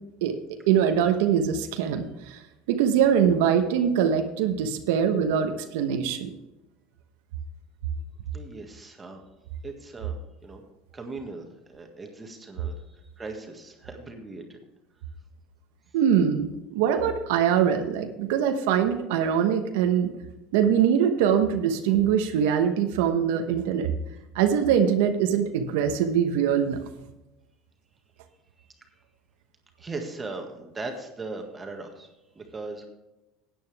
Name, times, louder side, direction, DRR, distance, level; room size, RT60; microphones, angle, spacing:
voice 1, 0.2-2.4 2.7-6.3 15.9-20.1 20.5-23.9 24.3-26.8, right 8 dB, 80° right, 6 dB, 1.1 m, -23 dB
voice 2, 8.3-9.2 9.6-10.2 10.4-10.6 10.9-14.6 28.6-28.7 29.8-32.9, right 3 dB, 20° right, 3 dB, 1.8 m, -39 dB
13.5 x 9.2 x 3.5 m, 1.0 s
supercardioid pair, 110°, 0 cm